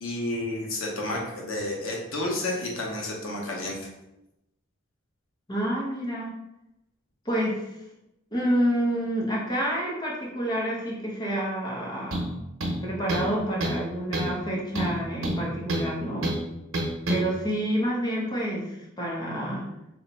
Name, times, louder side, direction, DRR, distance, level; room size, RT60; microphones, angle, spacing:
voice 1, 0.0-3.9, left 1 dB, 90° left, -2 dB, 1.0 m, -31 dB
voice 2, 5.5-6.3 7.2-7.6 8.3-12.3 12.8-16.3 17.1-19.7, equal, 20° left, -4 dB, 0.9 m, -28 dB
sound 1, 12.1-12.3 12.6-13.3 13.6-13.8 14.1-14.4 14.7-15.9 16.2-16.4 16.7-17.2, right 1 dB, 75° right, 0.9 m, -28 dB
3.2 x 2.8 x 4.2 m, 0.90 s
head